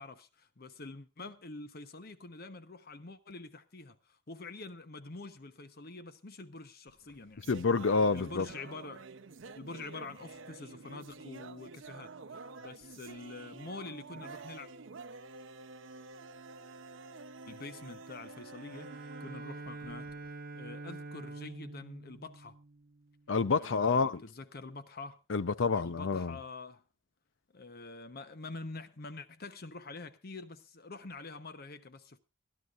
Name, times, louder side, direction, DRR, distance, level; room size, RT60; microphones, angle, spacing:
voice 1, 0.0-7.5 8.1-9.1 9.6-12.1 12.6-14.7 17.5-18.9 19.2-20.1 20.5-22.5 23.6-25.2 25.7-26.8 27.5-32.2, left 3 dB, 55° left, 1.0 m, -46 dB
sound 1, 6.9-20.3, right 3 dB, 80° right, 0.7 m, -49 dB
voice 2, 7.5-8.5 23.3-24.2 25.3-26.4, left 4 dB, 75° left, 0.6 m, -28 dB
Bowed string instrument, 18.7-23.3, right 3 dB, 50° right, 1.0 m, -46 dB
25.0 x 11.5 x 2.5 m
head